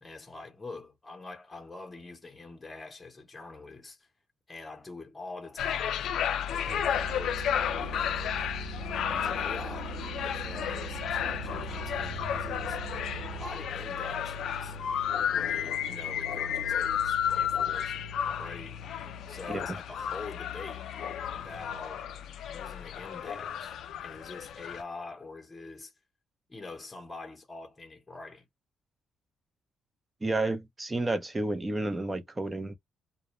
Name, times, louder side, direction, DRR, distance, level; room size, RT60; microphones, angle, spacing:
voice 1, 0.0-4.1 4.5-6.0 6.5-8.3 8.9-10.0 10.2-12.8 13.3-14.8 15.3-18.0 18.4-18.8 19.3-20.9 21.3-22.0 22.5-25.9 26.5-28.5, left 3 dB, 20° left, 0.8 m, -45 dB
sound 1, 5.6-24.8, left 9 dB, 75° left, 0.3 m, -32 dB
Musical instrument, 6.7-13.7, right 13 dB, 80° right, 0.3 m, -42 dB
voice 2, 30.2-32.8, right 2 dB, 20° right, 0.6 m, -31 dB
2.1 x 2.1 x 2.9 m
cardioid pair, 90°, 0 cm